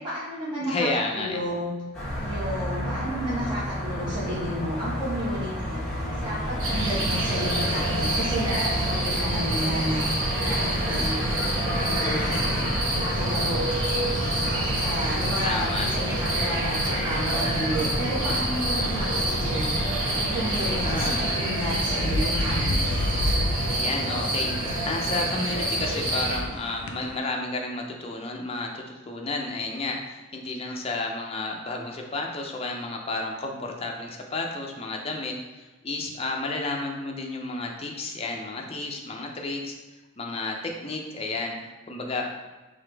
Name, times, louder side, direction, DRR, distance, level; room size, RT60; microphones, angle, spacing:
voice 1, 0.0-0.9 1.1-1.7 2.2-5.8 6.2-10.0 10.3-11.2 11.6-12.5 12.9-13.6 13.9-14.3 14.8-19.7 20.1-22.8, equal, 20° right, -10 dB, 1.3 m, -31 dB
voice 2, 0.7-1.4 15.4-15.9 20.8-21.1 23.7-39.7 40.2-42.3, left 2 dB, 30° left, 1 dB, 0.5 m, -31 dB
sound 1, 1.9-21.4, equal, 5° left, 1.1 m, -32 dB
sound 2, 6.6-26.4, right 1 dB, 85° right, 1.2 m, -27 dB
sound 3, 11.2-27.2, left 2 dB, 90° left, 0.4 m, -35 dB
3.7 x 3.3 x 3.4 m, 1.2 s
head